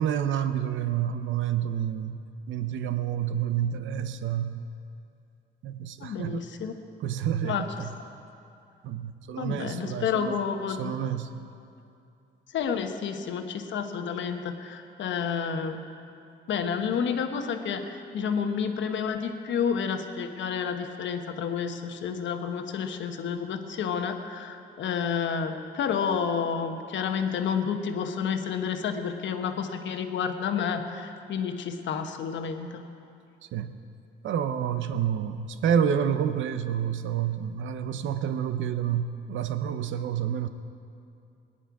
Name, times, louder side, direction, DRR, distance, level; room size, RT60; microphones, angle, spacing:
voice 1, 0.0-2.2 2.5-4.5 5.6-6.4 7.0-7.7 8.8-10.3 10.8-11.3 33.5-33.8 34.2-40.5, right 9 dB, 75° right, 10 dB, 0.7 m, -28 dB
voice 2, 6.0-6.7 7.4-7.7 9.4-10.9 12.5-15.8 16.5-32.8, left 6 dB, 70° left, 6 dB, 1.1 m, -30 dB
19.5 x 10.0 x 4.8 m, 2.6 s
cardioid pair, 90°, 20 cm